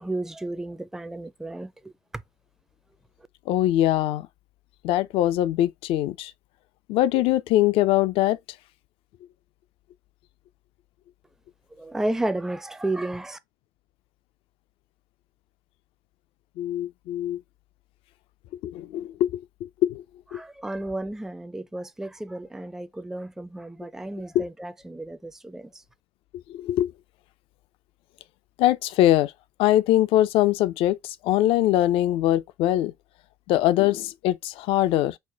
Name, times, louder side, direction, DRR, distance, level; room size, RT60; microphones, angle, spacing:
voice 1, 0.0-1.9 11.8-13.4 20.3-25.7, right 1 dB, 5° right, 0.5 m, -32 dB
voice 2, 3.5-4.3 4.8-6.3 6.9-8.4 16.6-17.4 18.6-20.0 20.3-20.4 24.3-24.5 26.5-26.9 28.6-29.3 29.6-32.9 33.5-35.2, left 13 dB, 65° left, 0.4 m, -22 dB
4.2 x 2.2 x 3.8 m
hypercardioid pair, 65°, 10 cm